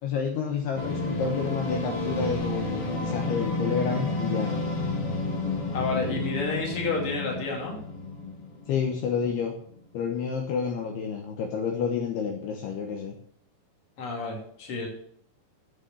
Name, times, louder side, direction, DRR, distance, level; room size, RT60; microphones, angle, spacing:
voice 1, 0.0-4.5 8.7-9.5 9.9-13.1, left 6 dB, 70° left, 2 dB, 2.8 m, -29 dB
sound 1, 0.8-9.4, left 2 dB, 55° left, 1.8 m, -31 dB
voice 2, 5.7-7.8 14.0-14.9, left 3 dB, 35° left, 0 dB, 3.0 m, -30 dB
8.3 x 7.9 x 7.8 m, 0.66 s
omnidirectional pair, 5.4 m